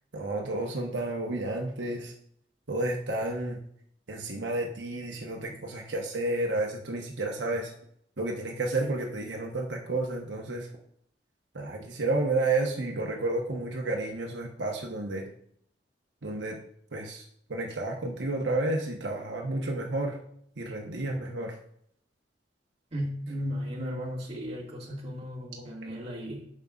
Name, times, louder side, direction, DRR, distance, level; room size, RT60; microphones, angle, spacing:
voice 1, 0.1-2.1 2.7-3.6 4.1-7.7 8.2-10.7 11.5-15.3 16.2-16.6 16.9-17.2 17.5-20.2 20.6-21.5 25.6-25.7, right 2 dB, 85° right, 0 dB, 1.1 m, -31 dB
voice 2, 22.9-26.5, equal, 35° right, -4 dB, 2.0 m, -35 dB
9.2 x 6.5 x 2.5 m, 0.68 s
head